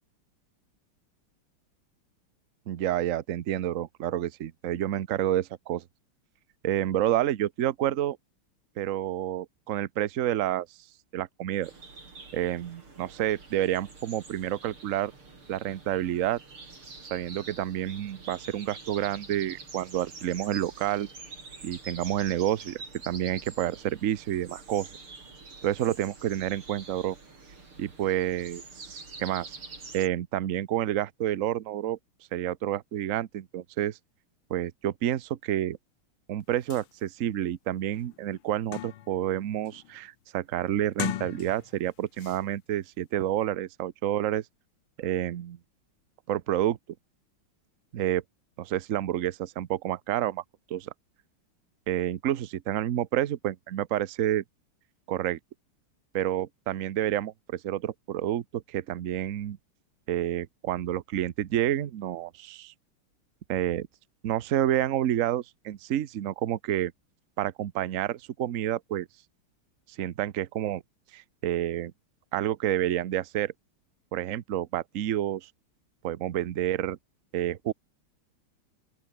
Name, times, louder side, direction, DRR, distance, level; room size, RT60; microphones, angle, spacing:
voice 1, 2.7-5.8 6.6-8.2 8.8-10.7 11.1-11.7 12.3-15.1 15.5-16.4 17.1-21.1 21.6-25.0 25.6-27.2 27.8-29.6 29.9-32.0 32.3-34.0 34.5-35.8 36.3-44.4 45.0-45.6 46.3-46.8 47.9-48.2 48.6-50.4 50.7-50.9 51.9-54.4 55.1-55.4 56.1-59.6 60.1-62.7 63.5-63.9 64.2-66.9 67.4-69.1 70.0-70.8 71.1-71.9 72.3-73.5 74.1-75.5 76.0-77.0 77.3-77.7, right 12 dB, 55° right, 0.9 m, -29 dB
sound 1, 11.6-30.1, right 3 dB, 90° right, 6.0 m, -47 dB
sound 2, 36.4-36.5 36.7-36.9 37.4-37.5 37.9-39.3 39.7-40.0 40.8-41.8 42.2-42.4, left 12 dB, 85° left, 1.9 m, -38 dB
open air
omnidirectional pair, 2.3 m